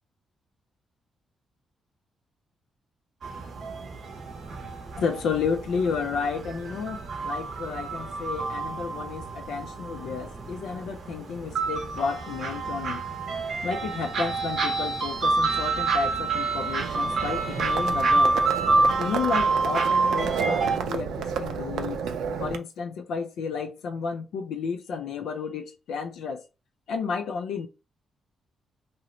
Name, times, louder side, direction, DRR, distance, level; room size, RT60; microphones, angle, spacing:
sound 1, 3.2-20.8, right 3 dB, 45° right, 0.7 m, -28 dB
voice 1, 5.0-13.0 13.6-18.4 19.0-22.0 22.4-26.4 26.9-27.7, left 5 dB, 80° left, 0.3 m, -31 dB
Livestock farm animals working animals, 16.8-22.6, right 6 dB, 90° right, 0.4 m, -31 dB
3.0 x 2.0 x 3.7 m
wide cardioid pair, 180°, 0 cm